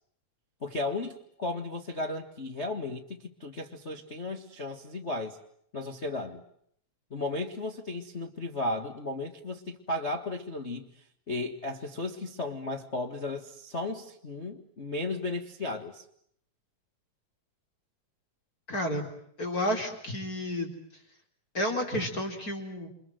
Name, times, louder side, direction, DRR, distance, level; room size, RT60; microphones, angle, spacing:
voice 1, 0.6-5.4 5.7-6.4 7.1-16.0, left 2 dB, 75° left, 3 dB, 0.6 m, -35 dB
voice 2, 18.7-19.1 19.4-20.7 21.5-22.9, equal, 25° left, 4 dB, 4.2 m, -31 dB
29.0 x 26.0 x 7.8 m, 0.67 s
omnidirectional pair, 4.3 m